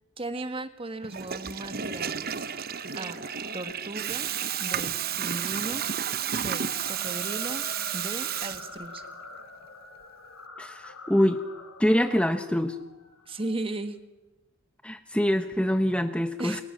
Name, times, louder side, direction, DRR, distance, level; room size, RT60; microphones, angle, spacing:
voice 1, 0.2-2.5 2.9-3.2 3.5-4.3 4.6-5.8 6.3-7.6 7.9-9.0 13.3-14.0 16.4-16.6, right 2 dB, 25° right, 9 dB, 1.7 m, -36 dB
Water tap faucet / Toilet flush, 1.0-9.1, right 9 dB, 45° right, 0.9 m, -32 dB
sound 1, 1.1-13.5, left 3 dB, 85° left, 3.7 m, -46 dB
voice 2, 10.6-11.4 11.8-12.8 14.8-16.6, equal, 5° left, 8 dB, 1.0 m, -25 dB
29.5 x 23.0 x 7.4 m, 1.0 s
head